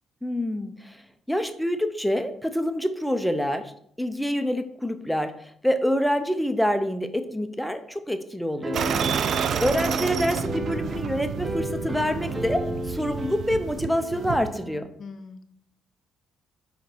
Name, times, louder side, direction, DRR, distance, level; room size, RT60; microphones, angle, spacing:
voice 1, 0.2-1.0 1.3-3.7 4.0-8.8 9.6-14.9, equal, ahead, 8 dB, 0.6 m, -26 dB
sound 1, 8.6-14.8, equal, 20° right, 1.0 m, -34 dB
sound 2, 8.7-14.5, right 7 dB, 65° right, 0.4 m, -30 dB
voice 2, 8.9-9.3 15.0-15.4, left 4 dB, 55° left, 9 dB, 0.7 m, -39 dB
5.1 x 5.0 x 4.5 m, 0.66 s
cardioid pair, 90°, 0 cm